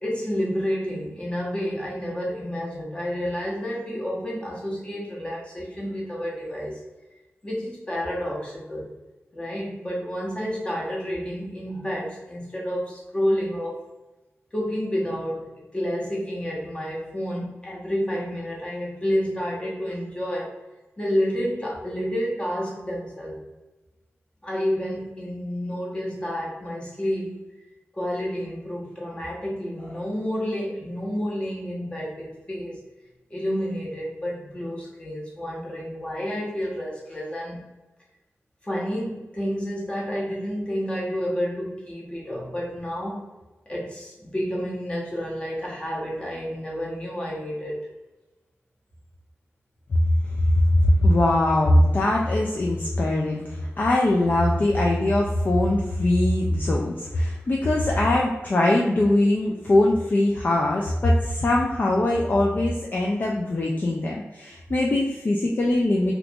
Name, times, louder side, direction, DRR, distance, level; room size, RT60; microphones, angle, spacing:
voice 1, 0.0-6.8 7.4-8.9 9.3-13.8 14.5-20.6 21.0-23.4 24.4-27.4 27.9-32.8 33.3-37.6 38.6-43.3 43.7-47.8, equal, 20° left, -4 dB, 1.0 m, -30 dB
voice 2, 50.7-66.1, left 1 dB, 45° left, -1 dB, 0.4 m, -21 dB
2.9 x 2.4 x 3.5 m, 1.1 s
wide cardioid pair, 110°, 5 cm